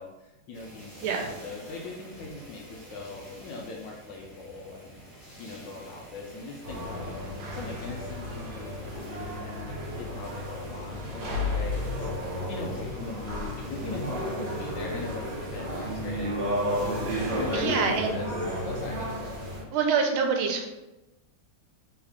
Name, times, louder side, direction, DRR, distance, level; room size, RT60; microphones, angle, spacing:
voice 1, 0.0-5.0 5.4-16.4 17.3-18.3 18.6-19.1, left 3 dB, 75° left, -2 dB, 1.1 m, -40 dB
sound 1, 0.5-19.6, equal, 15° left, 1.2 m, -49 dB
sound 2, 6.6-19.6, left 1 dB, 65° right, 1.4 m, -32 dB
voice 2, 17.5-18.2 19.7-20.7, right 5 dB, 90° right, 3 dB, 1.5 m, -25 dB
3.6 x 2.3 x 3.4 m, 1.0 s
omnidirectional pair, 2.2 m